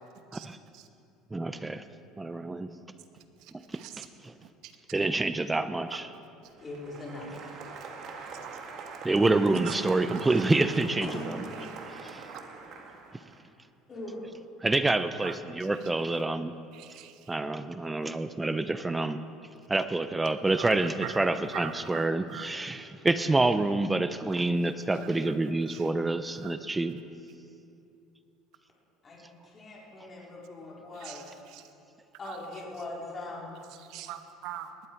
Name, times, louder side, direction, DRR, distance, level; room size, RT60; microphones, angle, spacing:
voice 1, 1.3-1.8 2.2-2.7 3.7-4.3 4.9-6.1 9.0-11.4 12.1-12.2 14.6-16.5 17.3-19.2 19.7-27.0, right 2 dB, 10° right, 11 dB, 0.5 m, -27 dB
voice 2, 3.7-4.1 4.6-4.7 8.4-8.5 9.7-10.4 15.2-15.3 16.7-17.1 20.6-20.7 21.0-21.2 21.5-22.0 22.3-22.5 25.1-25.2 25.7-25.8 26.4-26.5 31.0-31.2 31.5-31.6 32.2-32.4 33.9-34.7, right 11 dB, 65° right, 8 dB, 1.2 m, -41 dB
Applause, 6.4-13.4, right 4 dB, 50° right, 1.8 m, -43 dB
voice 3, 6.6-7.3 11.1-11.6 13.9-14.2 29.0-31.4 32.2-33.6, left 2 dB, 30° left, -4 dB, 3.9 m, -41 dB
19.0 x 12.0 x 4.5 m, 2.7 s
supercardioid pair, 115°, 0 cm